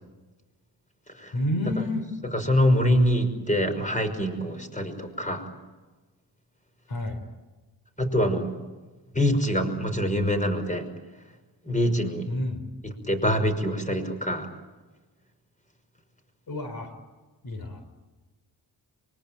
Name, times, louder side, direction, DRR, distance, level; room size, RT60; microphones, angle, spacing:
voice 1, 1.3-2.1 6.9-7.2 12.3-12.6 16.5-16.9 17.4-17.8, left 1 dB, 55° left, 7 dB, 4.1 m, -29 dB
voice 2, 2.3-5.4 8.0-8.5 9.1-10.9 11.7-12.3 12.8-14.5, equal, 15° left, 8 dB, 5.8 m, -24 dB
25.0 x 24.5 x 9.1 m, 1.2 s
supercardioid pair, 50°, 44 cm